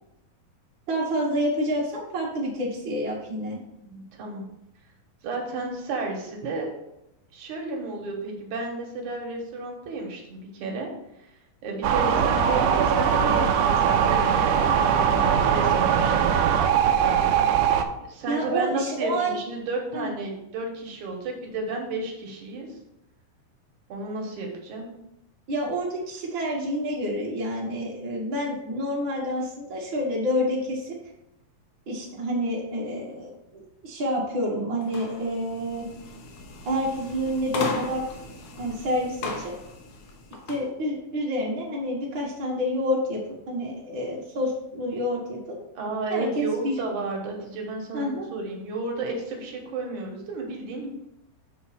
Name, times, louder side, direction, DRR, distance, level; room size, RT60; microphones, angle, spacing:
voice 1, 0.9-3.6 18.3-19.4 19.9-20.1 25.5-30.9 31.9-35.8 36.6-38.0 38.6-39.5 40.5-43.2 43.5-45.5 46.1-46.7 47.9-48.3, equal, 50° right, -5 dB, 1.6 m, -28 dB
voice 2, 3.8-4.4 5.2-6.7 7.3-10.9 11.6-16.3 18.0-22.8 23.9-24.9 45.8-50.9, right 3 dB, 65° right, 1 dB, 2.4 m, -32 dB
sound 1, 11.8-17.8, right 8 dB, 80° right, 1.9 m, -21 dB
sound 2, 34.8-40.7, left 3 dB, 70° left, 1.7 m, -37 dB
7.0 x 4.0 x 5.7 m, 0.83 s
omnidirectional pair, 4.1 m